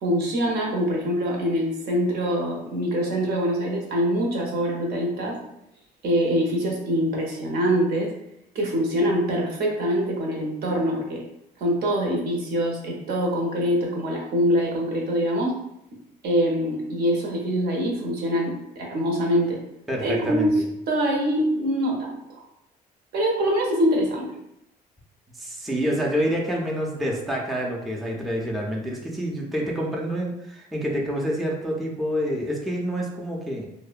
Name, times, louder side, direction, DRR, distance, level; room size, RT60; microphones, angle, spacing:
voice 1, 0.0-5.4 6.0-8.1 8.5-11.2 11.6-15.5 16.2-19.6 20.0-22.4 23.1-24.3, equal, 70° right, -1 dB, 0.7 m, -24 dB
voice 2, 19.9-20.5 25.4-33.6, equal, ahead, -2 dB, 0.4 m, -27 dB
2.6 x 2.1 x 2.4 m, 0.80 s
cardioid pair, 110°, 17 cm